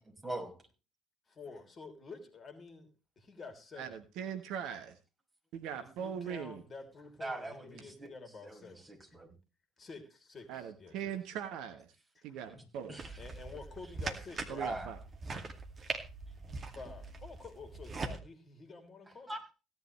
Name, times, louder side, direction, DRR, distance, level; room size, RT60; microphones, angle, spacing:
voice 1, 0.1-0.6 7.2-8.2 8.4-9.3 12.5-12.6 12.9-13.2 14.6-14.9 19.3-19.5, right 2 dB, 15° right, 5.9 m, -42 dB
voice 2, 1.3-2.9 3.2-4.0 5.7-8.9 9.8-11.1 12.2-12.3 13.2-14.7 16.7-19.3, left 4 dB, 30° left, 3.0 m, -49 dB
voice 3, 3.8-5.0 5.5-6.6 10.5-11.9 12.2-13.0 14.5-15.0, right 8 dB, 55° right, 1.2 m, -40 dB
sound 1, 13.0-18.2, right 3 dB, 35° right, 2.3 m, -42 dB
17.0 x 10.5 x 3.3 m
figure-of-eight pair, 55°, 0 cm